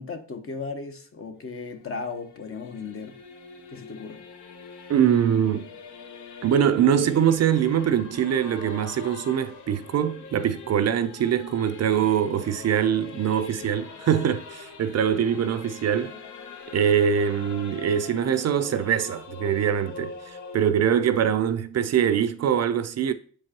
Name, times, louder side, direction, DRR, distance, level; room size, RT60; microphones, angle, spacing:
voice 1, 0.0-3.1 3.7-4.2, left 4 dB, 45° left, 1.1 m, -36 dB
Singing / Musical instrument, 1.3-20.7, left 5 dB, 65° left, 0.9 m, -43 dB
voice 2, 4.9-5.7 6.4-16.1 16.7-23.1, right 9 dB, 55° right, 0.5 m, -23 dB
7.2 x 4.6 x 2.9 m
cardioid pair, 65°, 32 cm